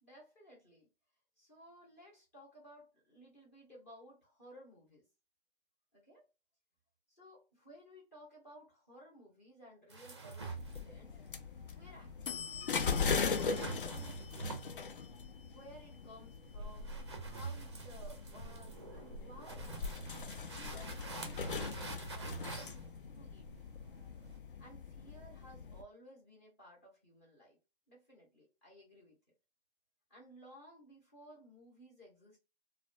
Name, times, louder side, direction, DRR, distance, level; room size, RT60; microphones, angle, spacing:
voice 1, 0.0-0.9 1.4-5.1 5.9-6.2 7.2-11.2 11.7-14.6 15.5-19.7 20.5-22.7 23.2-23.5 24.6-27.6 27.9-29.2 30.1-32.4, equal, 15° left, 0.7 m, -57 dB
sound 1, 9.9-24.4, right 4 dB, 30° right, 0.4 m, -47 dB
sound 2, 10.4-25.8, left 5 dB, 60° left, 0.5 m, -40 dB
2.3 x 2.1 x 2.5 m
figure-of-eight pair, 155°, 31 cm